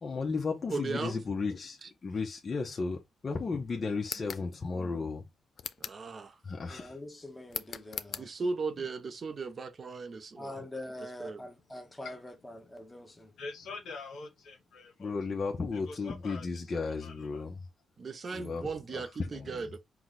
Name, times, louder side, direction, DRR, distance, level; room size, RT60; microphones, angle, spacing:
voice 1, 0.0-3.0 3.2-5.3 6.4-6.9 15.0-17.6 18.3-19.6, left 4 dB, 40° left, 0.8 m, -34 dB
voice 2, 0.7-1.2 5.8-6.3 8.2-10.6 11.2-11.4 18.0-19.8, right 4 dB, 45° right, 0.6 m, -37 dB
sound 1, 4.0-4.5 5.6-6.1 7.5-8.3, left 7 dB, 55° left, 0.4 m, -39 dB
voice 3, 6.7-8.3 10.3-13.3 18.2-18.4, left 1 dB, 10° left, 1.1 m, -44 dB
voice 4, 13.4-15.1 15.7-16.4 17.0-17.4, left 3 dB, 80° left, 1.1 m, -45 dB
4.6 x 2.2 x 4.0 m
cardioid pair, 105°, 0 cm